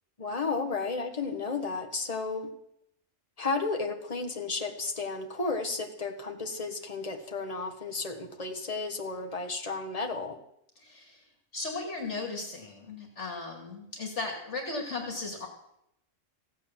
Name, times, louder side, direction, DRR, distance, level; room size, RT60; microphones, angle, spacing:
voice 1, 0.2-2.5 3.4-10.4, left 3 dB, 30° left, 3 dB, 1.5 m, -33 dB
voice 2, 10.8-11.2 11.5-15.5, left 3 dB, 60° left, 2 dB, 2.7 m, -36 dB
15.5 x 8.4 x 7.4 m, 0.78 s
omnidirectional pair, 1.4 m